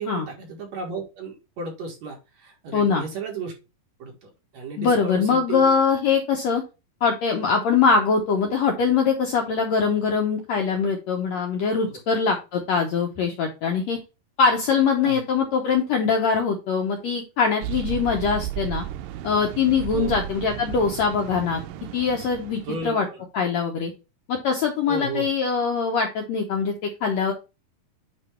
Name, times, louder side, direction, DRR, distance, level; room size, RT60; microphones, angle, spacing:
voice 1, 0.0-3.5 4.0-5.7 11.9-12.0 15.0-15.2 19.9-20.1 22.7-23.1 24.9-25.3, right 4 dB, 60° right, 0 dB, 2.6 m, -34 dB
voice 2, 2.7-3.0 4.8-6.6 7.0-14.0 14.4-18.8 19.2-21.6 21.9-23.1 23.3-23.9 24.3-27.3, left 5 dB, 70° left, 2 dB, 1.7 m, -22 dB
sound 1, 17.6-23.0, right 13 dB, 80° right, 2.1 m, -34 dB
8.9 x 3.1 x 4.3 m, 0.28 s
omnidirectional pair, 4.1 m